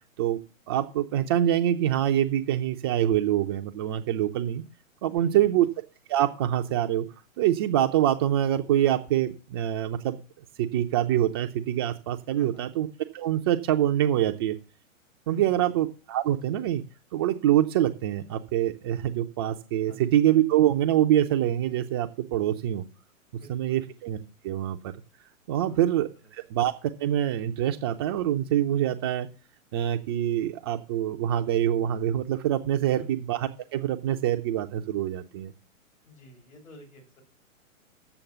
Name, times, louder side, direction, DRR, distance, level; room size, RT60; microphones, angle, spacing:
voice 1, 0.7-4.6 5.0-5.7 6.1-7.0 7.4-10.2 10.6-12.9 13.1-14.6 15.3-16.8 17.1-22.8 23.5-24.2 24.4-24.9 25.5-26.1 26.5-29.3 29.7-35.5, right 11 dB, 20° right, 4 dB, 0.4 m, -25 dB
voice 2, 5.1-5.6 12.4-12.7 15.3-15.8 19.9-20.2 23.3-24.0 25.6-26.0 33.0-33.2 36.0-37.2, left 1 dB, 75° left, 0 dB, 6.3 m, -49 dB
8.0 x 7.0 x 7.0 m, 0.35 s
hypercardioid pair, 125°, 41 cm